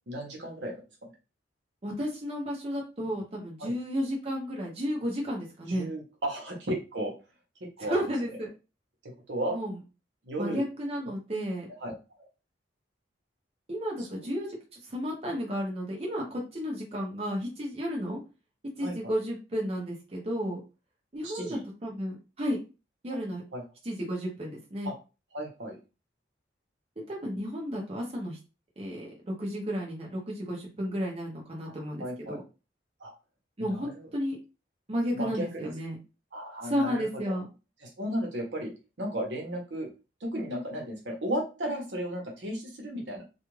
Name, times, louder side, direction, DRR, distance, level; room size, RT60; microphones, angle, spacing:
voice 1, 0.1-1.1 3.6-3.7 5.7-7.1 7.8-8.1 9.3-9.6 10.2-10.6 11.8-11.9 14.0-14.3 18.8-19.1 21.2-21.6 23.5-23.6 24.8-24.9 25.3-25.8 32.0-32.4 33.0-33.1 33.6-34.1 35.1-35.7 36.3-37.4 38.0-38.7 39.0-39.9 40.2-43.2, right 1 dB, 75° right, 0 dB, 0.9 m, -34 dB
voice 2, 1.8-5.9 7.8-8.5 9.5-9.8 10.4-11.7 13.7-18.2 18.8-20.6 21.1-22.6 23.0-23.4 23.8-24.9 27.1-28.4 28.8-32.4 33.6-34.4 34.9-36.0 36.6-37.4, equal, 35° right, -2 dB, 0.7 m, -32 dB
2.4 x 2.3 x 3.1 m, 0.30 s
head